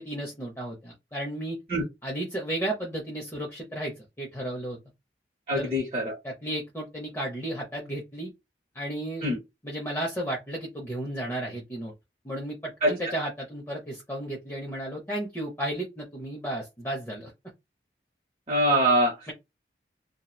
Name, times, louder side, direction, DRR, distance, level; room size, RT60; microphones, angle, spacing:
voice 1, 0.0-1.6 2.0-4.8 5.5-5.7 6.2-8.3 8.7-9.3 9.6-11.9 12.2-17.3, right 1 dB, 15° left, 0.5 m, -33 dB
voice 2, 5.5-6.2 9.2-9.4 12.8-13.1 18.5-19.1, right 1 dB, 35° right, 0.6 m, -24 dB
2.8 x 2.0 x 2.2 m
head